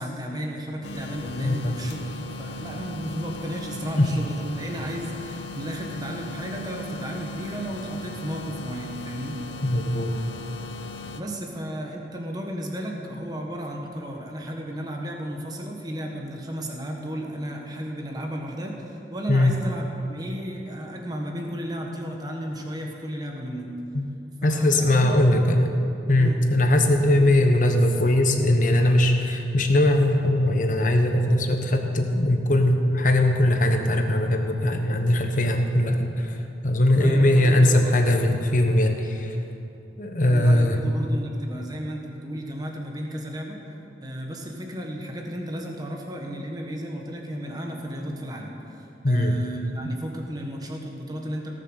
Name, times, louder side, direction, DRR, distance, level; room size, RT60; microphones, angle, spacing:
voice 1, 0.0-9.4 11.2-23.7 24.4-25.4 26.2-26.4 27.1-27.4 36.8-38.0 40.3-43.6 44.0-48.5 48.8-51.5, equal, 20° right, 1 dB, 1.4 m, -34 dB
sound 1, 0.8-11.2, left 2 dB, 85° left, 0.8 m, -37 dB
voice 2, 1.4-1.8 4.0-4.1 9.6-10.1 19.3-19.6 24.4-25.7 26.1-36.4 36.6-39.3 40.0-40.8 49.0-49.3, left 1 dB, 45° left, 4 dB, 1.1 m, -20 dB
18.0 x 6.7 x 6.4 m, 2.8 s
head